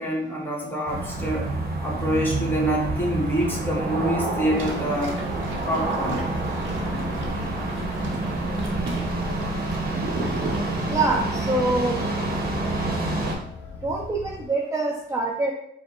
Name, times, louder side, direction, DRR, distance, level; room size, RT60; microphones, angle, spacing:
voice 1, 0.0-1.5 1.8-5.2 5.5-6.3, right 1 dB, 10° left, -4 dB, 1.3 m, -26 dB
sound 1, 0.9-13.3, right 2 dB, 50° right, 1.1 m, -28 dB
sound 2, 4.5-11.3, right 2 dB, 80° right, 0.9 m, -36 dB
sound 3, 6.1-14.5, left 5 dB, 50° left, 0.4 m, -39 dB
voice 2, 10.9-12.0 13.8-15.5, right 2 dB, 15° right, 0 dB, 0.5 m, -25 dB
4.6 x 2.1 x 3.0 m, 0.71 s
cardioid pair, 90°, 20 cm